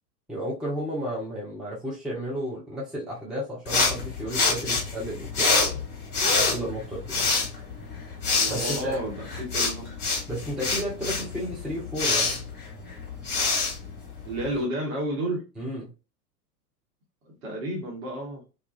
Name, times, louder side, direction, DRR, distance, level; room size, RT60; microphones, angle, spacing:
voice 1, 0.3-5.8 6.3-7.3 8.5-9.0 10.3-12.5 15.6-15.9, equal, ahead, 0.4 m, -33 dB
sound 1, 3.7-14.6, left 4 dB, 20° left, 1.1 m, -27 dB
voice 2, 8.4-10.0 14.3-15.4 17.2-18.4, right 1 dB, 60° right, 1.1 m, -31 dB
2.3 x 2.3 x 2.3 m
figure-of-eight pair, 90°, 48 cm